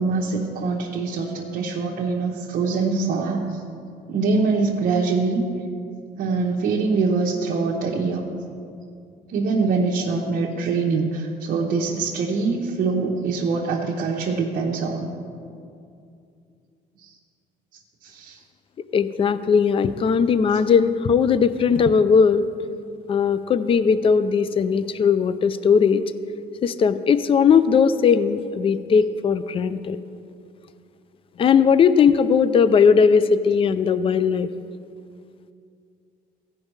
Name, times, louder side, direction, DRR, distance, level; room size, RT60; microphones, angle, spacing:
voice 1, 0.0-3.6 4.1-5.4 6.2-8.3 9.3-15.1 18.0-18.4, right 4 dB, 55° right, -4 dB, 1.0 m, -24 dB
voice 2, 18.9-22.5 23.1-26.0 26.6-30.0 31.4-34.5, left 6 dB, 35° left, 14 dB, 0.4 m, -18 dB
15.5 x 5.4 x 4.7 m, 2.4 s
cardioid pair, 110°, 17 cm